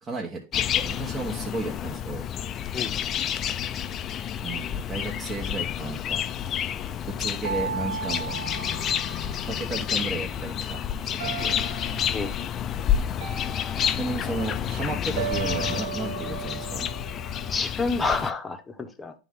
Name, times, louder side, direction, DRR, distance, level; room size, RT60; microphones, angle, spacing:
voice 1, 0.0-2.2 4.4-6.2 7.1-8.4 9.3-11.6 14.0-16.9, right 2 dB, 25° right, 1.2 m, -34 dB
sound 1, 0.5-18.3, left 9 dB, 35° left, 0.4 m, -29 dB
sound 2, 7.4-9.8 11.2-12.2 13.2-14.5 15.2-17.5, right 8 dB, 90° right, 0.8 m, -35 dB
voice 2, 17.5-19.1, left 4 dB, 15° left, 0.9 m, -29 dB
9.9 x 3.7 x 3.6 m
hypercardioid pair, 120°, 0 cm